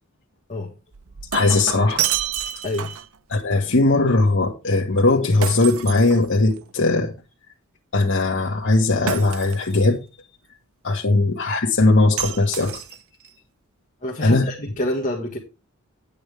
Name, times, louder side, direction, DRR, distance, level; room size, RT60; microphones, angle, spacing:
Shatter, 0.9-3.2 5.4-6.7 9.1-9.9 12.2-13.3, right 9 dB, 90° right, 0.7 m, -29 dB
voice 1, 1.3-2.0 3.3-7.1 7.9-10.0 10.8-12.8 14.2-14.5, left 2 dB, 65° left, 1.6 m, -19 dB
voice 2, 14.0-15.4, left 1 dB, 40° left, 1.5 m, -27 dB
9.7 x 8.5 x 3.5 m
head